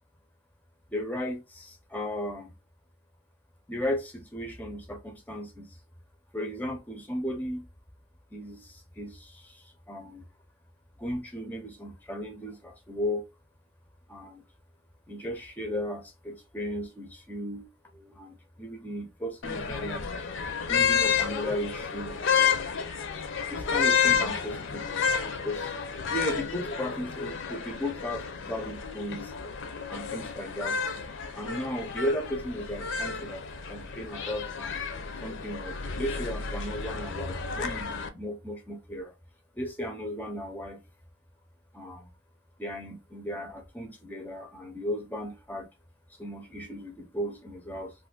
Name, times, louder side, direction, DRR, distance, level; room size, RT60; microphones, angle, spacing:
voice 1, 0.9-2.5 3.7-5.8 6.3-7.7 8.3-10.2 11.0-13.2 14.1-14.4 15.1-20.1 20.7-22.2 23.5-25.8 26.1-29.3 29.9-30.8 31.3-34.8 35.2-39.1 39.6-40.8 41.7-42.1 42.6-45.7 46.1-47.9, equal, 10° left, 0.5 m, -36 dB
sound 1, 19.4-38.1, left 6 dB, 65° left, 0.5 m, -30 dB
2.5 x 2.5 x 3.6 m
head